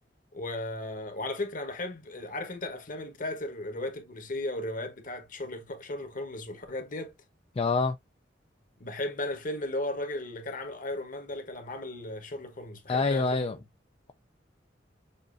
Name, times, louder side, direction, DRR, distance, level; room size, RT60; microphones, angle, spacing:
voice 1, 0.3-7.1 8.8-13.6, left 1 dB, 50° left, 1.1 m, -36 dB
voice 2, 7.6-8.0 12.9-13.6, left 3 dB, 30° left, 0.4 m, -26 dB
6.8 x 2.5 x 2.5 m
head